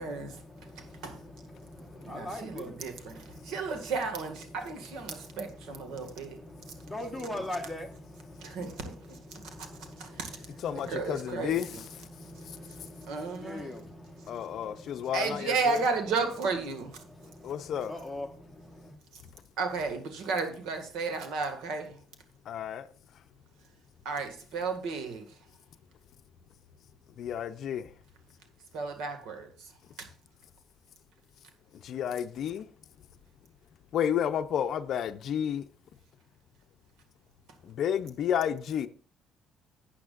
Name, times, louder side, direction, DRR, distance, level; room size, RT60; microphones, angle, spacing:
voice 1, 0.0-15.6 16.7-19.0, left 1 dB, ahead, 1.2 m, -44 dB
voice 2, 0.8-1.2 2.0-6.4 8.4-9.4 10.0-10.4 10.8-11.8 13.1-13.7 15.1-17.0 19.6-22.0 24.1-25.4 28.7-29.7 30.0-30.1, right 4 dB, 85° right, 1.8 m, -33 dB
voice 3, 10.6-11.7 14.3-15.8 17.4-17.9 22.5-22.9 27.2-27.9 31.7-32.7 33.9-35.6 37.6-38.9, left 9 dB, 50° left, 0.6 m, -31 dB
12.0 x 8.5 x 2.5 m
cardioid pair, 160°, 0 cm